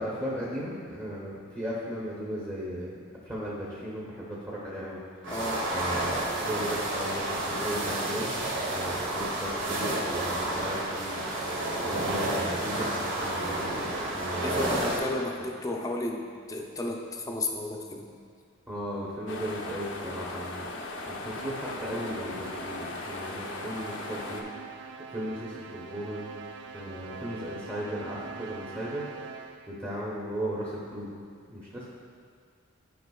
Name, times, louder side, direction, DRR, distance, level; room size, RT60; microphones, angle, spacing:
voice 1, 0.0-5.3 5.7-8.4 8.7-11.5 11.8-13.9 14.1-14.8 18.7-20.7 21.1-24.5 25.1-26.3 26.7-31.1 31.5-31.9, equal, 15° right, -7 dB, 0.9 m, -36 dB
sound 1, 5.2-15.0, right 1 dB, 80° right, 1.4 m, -30 dB
voice 2, 5.3-5.7 14.4-16.2 16.5-18.1, left 2 dB, 20° left, 1 dB, 0.6 m, -33 dB
sound 2, 19.3-24.4, left 2 dB, 65° left, 0.7 m, -38 dB
sound 3, 21.3-29.8, right 5 dB, 65° right, 0.4 m, -44 dB
11.0 x 5.0 x 2.3 m, 2.1 s
head